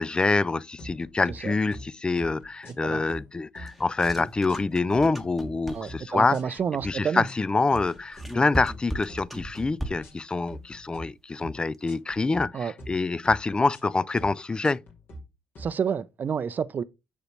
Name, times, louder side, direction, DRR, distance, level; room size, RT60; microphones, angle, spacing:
voice 1, 0.0-6.4 6.8-14.8, left 3 dB, 20° left, 0.3 m, -26 dB
sound 1, 0.8-1.4 1.7-1.9 2.2-2.8 3.1-4.1 4.5-5.5 5.9-6.0 6.3-6.9 7.2-7.4 7.7-8.3 8.6-8.8 9.1-9.7 10.0-10.2 10.5-11.0 11.4-11.6 11.9-12.4 12.8-13.0 13.2-13.8 14.2-14.3 14.6-15.2 15.5-15.7, equal, 60° left, 2.0 m, -43 dB
sound 2, 3.7-6.1 7.8-10.2, equal, 5° left, 1.1 m, -37 dB
voice 2, 5.7-7.2 12.5-12.7 15.6-16.8, right 7 dB, 45° right, 0.5 m, -29 dB
6.4 x 5.2 x 3.3 m
supercardioid pair, 60°, 4 cm